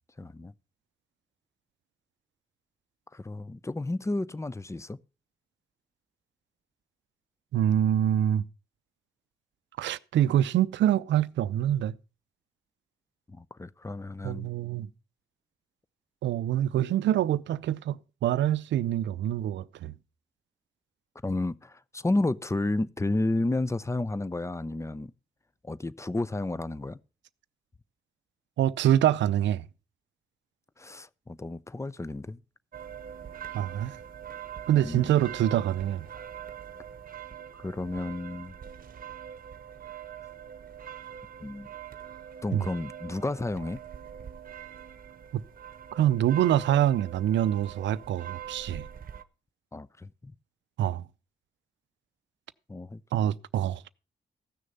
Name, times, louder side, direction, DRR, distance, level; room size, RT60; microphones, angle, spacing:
voice 1, 0.2-0.5 3.1-5.0 13.3-14.5 21.2-25.1 25.6-27.0 30.8-32.4 34.8-35.1 37.6-38.6 41.4-41.7 42.4-43.8 49.7-50.3 52.7-53.0, left 2 dB, 15° left, 0.6 m, -31 dB
voice 2, 7.5-8.4 9.8-12.0 14.2-14.9 16.2-19.9 28.6-29.7 33.5-34.0 34.7-36.1 42.5-42.6 45.3-45.4 46.0-48.9 50.8-51.1 53.1-53.8, right 11 dB, 70° right, 0.5 m, -25 dB
sound 1, 32.7-49.2, right 9 dB, 50° right, 0.9 m, -43 dB
15.0 x 6.5 x 5.3 m
hypercardioid pair, 40°, 19 cm